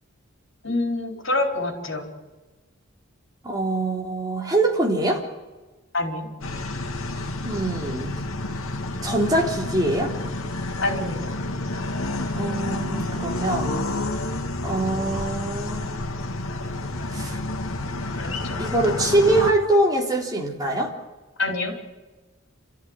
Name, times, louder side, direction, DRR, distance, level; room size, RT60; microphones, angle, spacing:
voice 1, 0.6-2.0 5.9-6.3 10.8-11.3 18.2-18.6 21.4-21.7, left 2 dB, 60° left, 2 dB, 4.7 m, -26 dB
voice 2, 3.4-5.2 7.4-8.2 9.0-10.1 12.3-13.8 14.6-15.8 17.1-17.4 18.6-20.9, right 2 dB, 20° right, -1 dB, 3.8 m, -23 dB
sound 1, 6.4-19.5, left 2 dB, 80° left, 2.3 m, -29 dB
28.5 x 14.0 x 9.9 m, 1.2 s
head